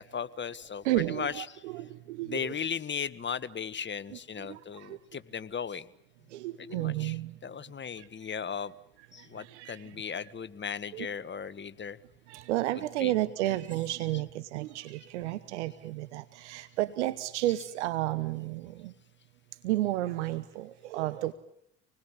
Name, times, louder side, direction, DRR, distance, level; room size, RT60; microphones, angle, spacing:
voice 1, 0.0-1.6 2.2-5.8 6.6-8.7 9.1-12.0 13.0-13.2 13.5-13.6, left 7 dB, 35° left, 14 dB, 1.5 m, -37 dB
voice 2, 0.8-2.5 4.1-5.0 6.3-7.4 7.9-8.1 9.0-10.3 10.9-11.1 12.3-18.9 19.6-21.3, right 16 dB, 85° right, 14 dB, 1.1 m, -32 dB
27.0 x 20.5 x 8.7 m, 0.74 s
hypercardioid pair, 60°, 34 cm